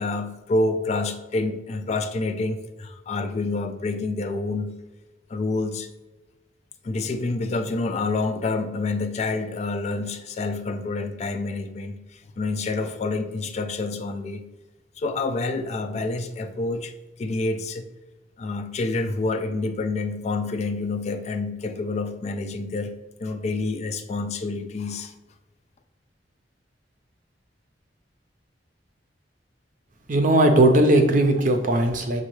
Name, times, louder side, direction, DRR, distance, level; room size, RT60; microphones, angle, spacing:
voice 1, 0.0-4.7 5.3-5.9 6.8-12.0 12.4-14.5 15.0-16.9 17.2-17.8 18.4-22.9 23.2-25.1, left 3 dB, 35° left, 7 dB, 0.3 m, -28 dB
voice 2, 30.1-32.2, right 1 dB, 45° right, 5 dB, 0.6 m, -18 dB
6.5 x 2.3 x 3.0 m, 1.1 s
head